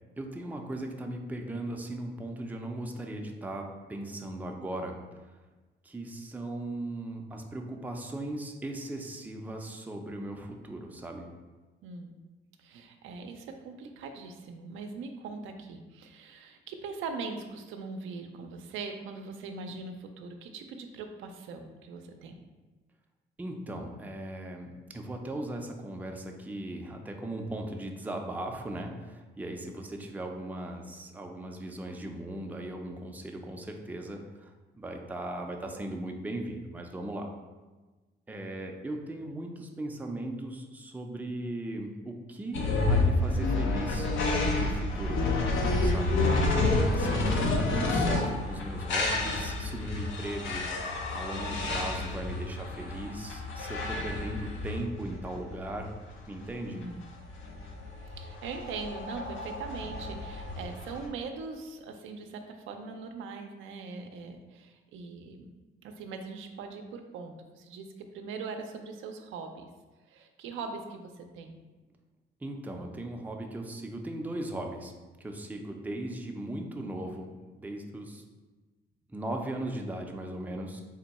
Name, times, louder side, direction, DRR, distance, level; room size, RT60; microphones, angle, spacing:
voice 1, 0.2-5.0 5.8-11.3 23.4-37.3 38.3-44.1 44.6-45.2 45.8-46.2 46.9-50.6 51.1-55.9 56.3-56.8 72.4-74.9 75.2-77.3 77.6-78.2 79.1-80.8, right 1 dB, 10° right, 2 dB, 0.4 m, -38 dB
voice 2, 11.8-12.2 12.6-22.4 56.6-57.0 58.1-65.5 65.8-69.6 70.1-71.6, right 4 dB, 85° right, 5 dB, 0.4 m, -41 dB
sound 1, 42.5-61.1, left 2 dB, 75° left, 0.6 m, -30 dB
3.5 x 2.2 x 4.0 m, 1.2 s
cardioid pair, 90°, 20 cm